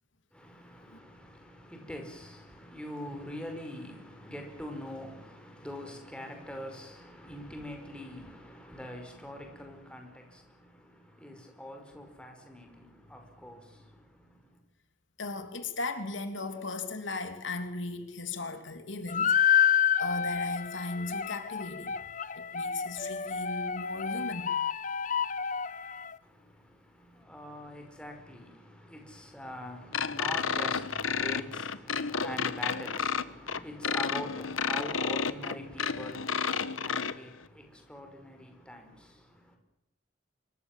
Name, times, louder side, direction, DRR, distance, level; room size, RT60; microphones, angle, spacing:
voice 1, 0.3-14.6 26.2-39.6, left 1 dB, 5° left, 5.2 m, -44 dB
voice 2, 15.2-21.9 22.3-24.5, left 3 dB, 70° left, 3.1 m, -37 dB
sound 1, 19.1-26.1, left 8 dB, 40° left, 1.0 m, -29 dB
sound 2, 29.9-37.1, left 6 dB, 90° left, 1.3 m, -31 dB
26.5 x 23.5 x 7.5 m
head